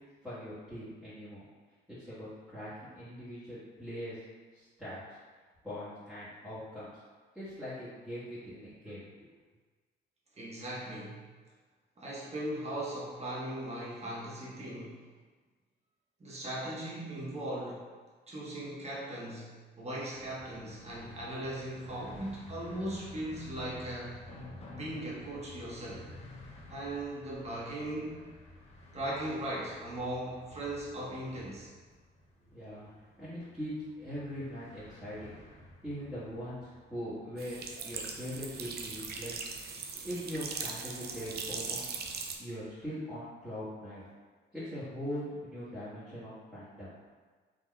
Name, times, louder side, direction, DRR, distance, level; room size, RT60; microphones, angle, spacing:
voice 1, 0.2-1.4 1.9-4.2 4.5-5.0 5.6-7.0 7.3-9.1 32.4-35.3 35.8-39.7 40.0-41.8 42.4-44.1 44.5-46.9, equal, ahead, -17 dB, 1.5 m, -41 dB
voice 2, 10.4-11.3 12.0-15.0 16.2-17.8 18.3-24.2 24.8-26.0 26.7-28.3 28.9-31.7, right 1 dB, 30° right, -5 dB, 1.1 m, -38 dB
sound 1, 20.1-37.4, left 1 dB, 35° left, 0.7 m, -52 dB
sound 2, 37.4-42.4, right 5 dB, 55° right, 0.4 m, -40 dB
3.8 x 2.8 x 2.2 m, 1.4 s
cardioid pair, 90°, 20 cm